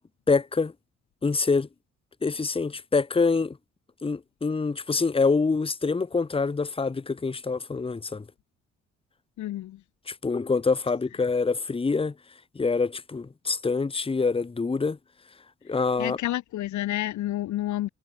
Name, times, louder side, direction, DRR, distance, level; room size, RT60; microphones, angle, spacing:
voice 1, 0.3-0.7 1.2-1.7 2.2-3.6 4.0-8.2 10.1-12.1 12.5-15.0 15.6-16.2, left 4 dB, 20° left, 1.0 m, -25 dB
voice 2, 9.4-9.8 16.0-17.9, left 14 dB, 70° left, 0.9 m, -29 dB
cardioid pair, 90°, 30 cm